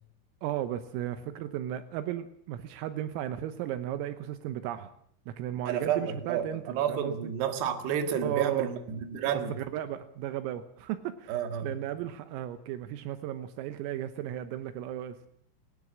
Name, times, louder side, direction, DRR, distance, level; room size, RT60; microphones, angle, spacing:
voice 1, 0.4-4.9 5.3-7.3 8.2-8.7 9.6-11.4 11.6-15.2, right 12 dB, 80° right, 11 dB, 3.6 m, -35 dB
voice 2, 5.7-9.5 11.3-11.7, right 8 dB, 60° right, 7 dB, 3.7 m, -30 dB
20.5 x 19.5 x 7.3 m, 0.66 s
omnidirectional pair, 6.0 m